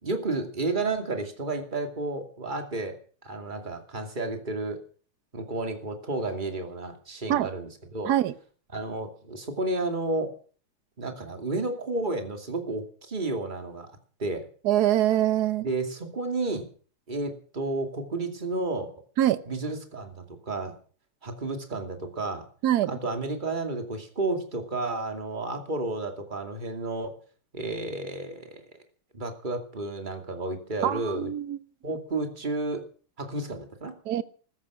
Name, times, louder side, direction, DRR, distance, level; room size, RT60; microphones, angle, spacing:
voice 1, 0.0-4.8 5.3-8.1 8.7-10.3 11.0-13.9 14.2-14.5 15.6-16.7 17.1-18.9 19.4-20.7 21.2-22.5 22.9-27.2 27.5-28.6 29.1-31.3 31.8-32.8 33.2-33.9, right 2 dB, 20° right, 5 dB, 2.6 m, -31 dB
voice 2, 14.6-15.7 19.2-19.4 22.6-22.9 30.8-31.6 34.1-34.2, right 12 dB, 55° right, 14 dB, 1.3 m, -24 dB
15.5 x 13.5 x 6.3 m, 0.42 s
omnidirectional pair, 2.4 m